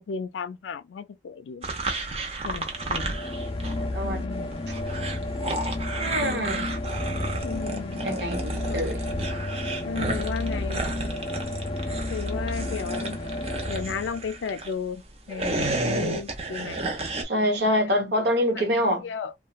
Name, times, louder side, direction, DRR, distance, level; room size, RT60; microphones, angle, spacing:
voice 1, 0.0-1.7 2.4-3.1 4.0-4.7 6.1-6.7 7.4-8.0 8.7-8.8 9.8-10.9 12.1-13.2 13.7-15.0 15.3-16.9 18.5-18.6 19.0-19.3, left 6 dB, 85° left, 0.4 m, -34 dB
sound 1, 1.6-3.8 4.1-14.7 15.2-17.2, right 2 dB, 35° right, 0.6 m, -32 dB
sound 2, 2.7-14.5, left 2 dB, 30° left, 0.4 m, -32 dB
voice 2, 6.0-6.8 8.0-9.0 17.2-19.0, equal, 70° right, 1.0 m, -25 dB
2.9 x 2.2 x 2.2 m
head